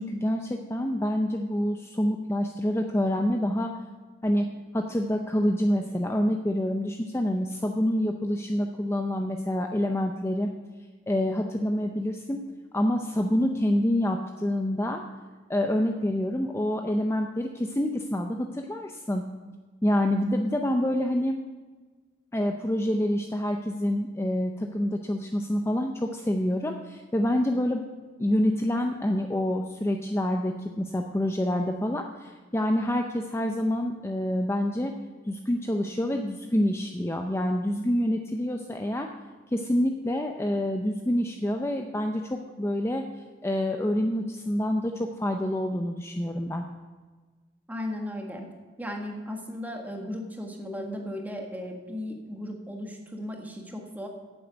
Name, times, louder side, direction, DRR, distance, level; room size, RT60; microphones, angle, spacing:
voice 1, 0.0-3.7 4.2-4.5 4.7-10.5 11.1-12.4 12.7-15.0 15.5-19.2 19.8-21.4 22.3-27.9 28.2-34.9 35.3-39.1 39.5-43.0 43.4-46.6, left 1 dB, 15° left, 4 dB, 0.6 m, -27 dB
voice 2, 47.7-48.5 48.8-54.1, left 1 dB, 10° right, 2 dB, 1.6 m, -36 dB
9.0 x 7.8 x 8.0 m, 1.3 s
head